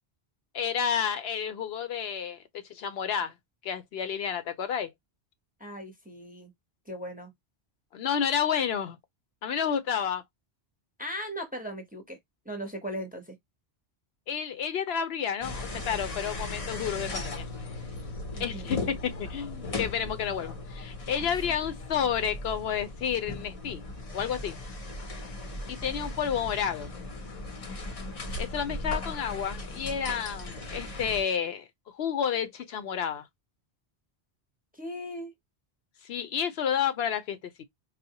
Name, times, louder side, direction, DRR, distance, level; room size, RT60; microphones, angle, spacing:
voice 1, 0.5-2.4 2.7-3.3 3.6-4.9 7.9-9.0 9.4-10.2 14.3-17.5 18.4-23.8 24.1-24.6 25.7-26.9 28.4-33.3 36.0-37.6, left 8 dB, 75° left, 0.8 m, -30 dB
voice 2, 5.6-6.5 6.9-7.3 11.0-12.2 12.4-13.4 18.3-18.9 21.2-21.3 34.7-35.3, equal, 10° right, 0.7 m, -38 dB
sound 1, 15.4-31.2, left 2 dB, 40° left, 0.6 m, -37 dB
4.1 x 2.0 x 2.8 m
omnidirectional pair, 1.1 m